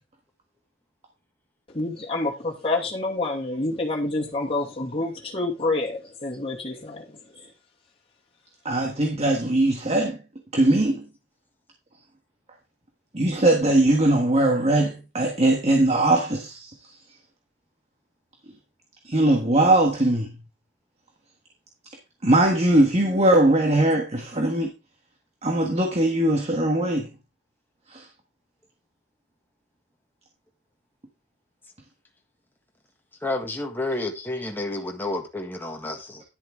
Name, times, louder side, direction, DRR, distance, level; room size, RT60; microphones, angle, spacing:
voice 1, 1.7-7.2, left 2 dB, 30° left, 2.3 m, -28 dB
voice 2, 8.6-10.2 10.5-11.0 13.1-16.7 19.0-20.3 22.2-24.7 25.4-27.1 27.9-28.1, right 1 dB, 35° right, 1.5 m, -20 dB
voice 3, 33.2-36.2, left 2 dB, 10° left, 1.7 m, -30 dB
11.0 x 7.4 x 3.6 m
head